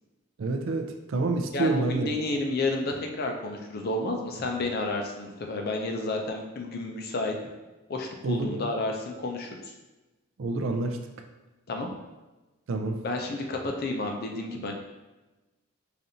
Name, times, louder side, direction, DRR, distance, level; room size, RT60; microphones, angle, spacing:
voice 1, 0.4-2.1 8.2-8.7 10.4-11.0 12.7-13.0, right 3 dB, 60° right, 5 dB, 0.4 m, -28 dB
voice 2, 1.5-7.3 7.9-9.5 11.7-11.9 13.0-14.7, left 2 dB, 45° left, 2 dB, 0.5 m, -31 dB
4.9 x 2.5 x 2.7 m, 1.1 s
head